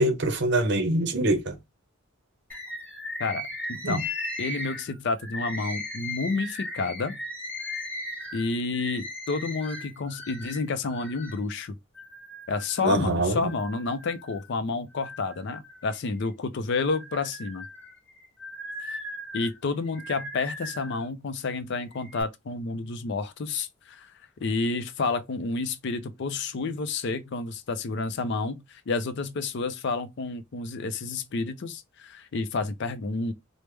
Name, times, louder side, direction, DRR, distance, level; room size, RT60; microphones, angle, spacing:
voice 1, 0.0-1.5 3.8-4.0 12.8-13.5, right 1 dB, 55° right, 0.7 m, -24 dB
Bird, 2.5-11.4 11.9-12.9 13.5-14.5 14.9-16.3 16.8-21.1 21.8-22.2, left 1 dB, 10° left, 1.2 m, -37 dB
voice 2, 3.2-4.0 4.4-7.2 8.3-11.7 12.5-17.7 18.8-19.0 19.3-24.1 24.4-33.3, left 3 dB, 55° left, 0.4 m, -30 dB
3.3 x 2.1 x 3.2 m
head